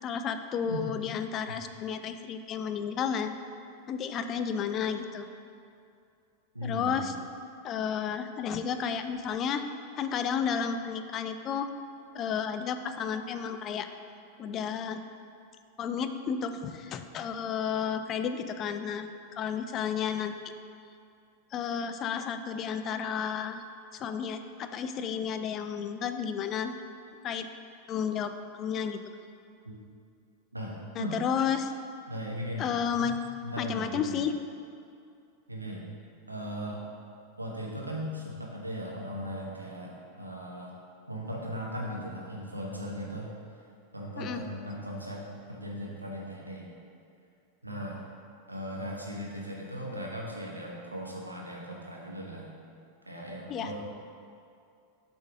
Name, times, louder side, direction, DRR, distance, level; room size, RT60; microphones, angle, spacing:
voice 1, 0.0-3.3 3.9-5.3 6.6-7.1 7.6-9.6 10.0-11.7 12.1-13.9 14.4-15.0 15.8-20.3 21.5-23.6 23.9-26.7 27.2-27.5 27.9-29.0 31.0-31.7 32.6-33.1 33.6-34.3 44.2-44.4 53.5-53.7, left 7 dB, 30° left, 9 dB, 0.4 m, -32 dB
voice 2, 6.5-7.2 29.6-29.7 30.5-31.2 32.1-33.1 33.4-34.2 35.5-35.8 36.3-36.8 37.4-40.7 41.1-43.3 43.9-46.7 47.6-48.0 48.5-52.5 53.0-53.7, equal, 85° right, -2 dB, 1.2 m, -38 dB
7.9 x 4.3 x 4.9 m, 2.4 s
figure-of-eight pair, 90°, 0 cm